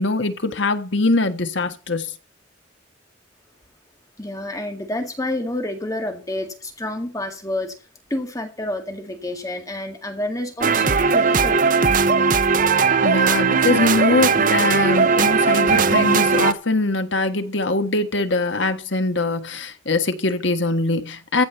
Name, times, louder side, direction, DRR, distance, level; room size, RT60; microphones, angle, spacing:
voice 1, 0.0-2.1 13.0-21.4, left 2 dB, 70° left, 1.5 m, -22 dB
voice 2, 4.2-7.8 8.1-11.7, left 1 dB, 15° left, 1.9 m, -29 dB
sound 1, 10.6-16.5, right 5 dB, 45° right, 0.7 m, -18 dB
15.0 x 5.1 x 8.1 m
head